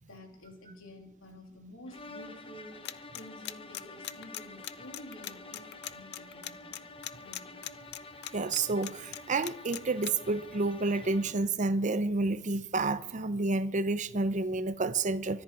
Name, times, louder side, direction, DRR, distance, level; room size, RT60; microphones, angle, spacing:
voice 1, 0.0-6.8 7.2-7.7, left 1 dB, 75° left, 3.2 m, -51 dB
sound 1, 1.9-11.6, left 2 dB, 25° left, 1.1 m, -48 dB
sound 2, 2.8-10.1, left 13 dB, 55° left, 0.6 m, -39 dB
voice 2, 8.3-15.4, right 3 dB, 40° right, 0.7 m, -30 dB
24.0 x 10.5 x 4.8 m
head